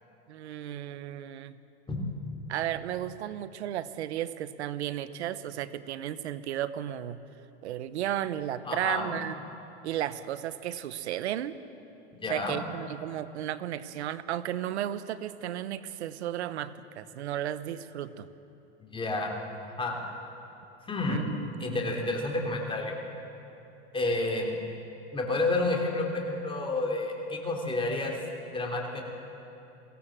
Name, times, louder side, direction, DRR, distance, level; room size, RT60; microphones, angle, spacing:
voice 1, 0.3-1.6 2.5-7.2 7.6-9.3 9.8-11.5 12.3-18.3 21.0-22.0, right 11 dB, 90° right, 15 dB, 0.9 m, -34 dB
voice 2, 8.6-9.2 12.1-12.6 18.8-19.4 19.6-20.0 20.9-21.3 21.6-23.0 23.9-24.5 25.1-28.1 28.4-29.0, left 2 dB, 15° left, 0 dB, 3.5 m, -30 dB
22.5 x 16.5 x 7.4 m, 2.9 s
supercardioid pair, 115°, 32 cm